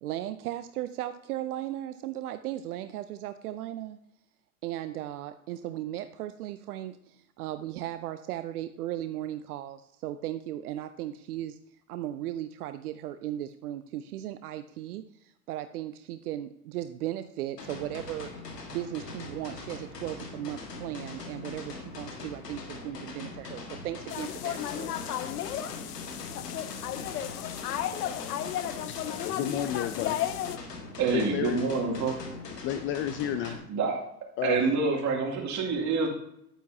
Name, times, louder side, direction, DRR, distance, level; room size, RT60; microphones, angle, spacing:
voice 1, 0.0-4.0 4.6-11.6 11.9-25.1, right 13 dB, 70° right, 11 dB, 0.6 m, -36 dB
sound 1, 17.6-33.6, left 3 dB, 85° left, 1.8 m, -42 dB
sound 2, 24.1-30.6, left 11 dB, 70° left, 0.8 m, -34 dB
voice 2, 29.2-30.2 31.1-31.6 32.0-32.1 32.4-33.6 34.4-34.6, left 10 dB, 30° left, 10 dB, 0.4 m, -31 dB
voice 3, 31.0-32.2 33.4-34.0 34.4-36.1, right 4 dB, 35° right, 0 dB, 2.6 m, -27 dB
10.0 x 9.2 x 2.8 m, 0.77 s
hypercardioid pair, 85°, 47 cm